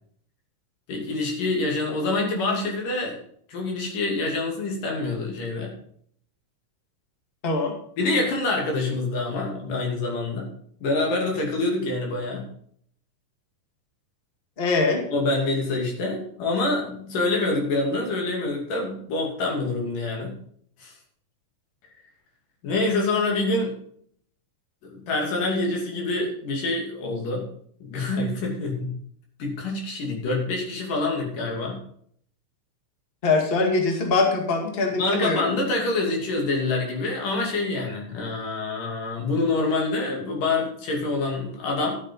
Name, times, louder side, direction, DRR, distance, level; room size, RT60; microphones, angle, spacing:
voice 1, 0.9-3.2 3.5-5.7 8.0-10.5 10.8-12.4 15.1-20.3 20.8-20.9 22.6-23.7 24.8-27.5 27.8-28.9 29.4-31.8 34.9-42.0, left 2 dB, 85° left, 0 dB, 4.4 m, -26 dB
voice 2, 14.6-15.0 33.2-35.4, left 3 dB, 20° left, 2 dB, 1.6 m, -22 dB
12.0 x 7.8 x 5.3 m, 0.62 s
omnidirectional pair, 3.7 m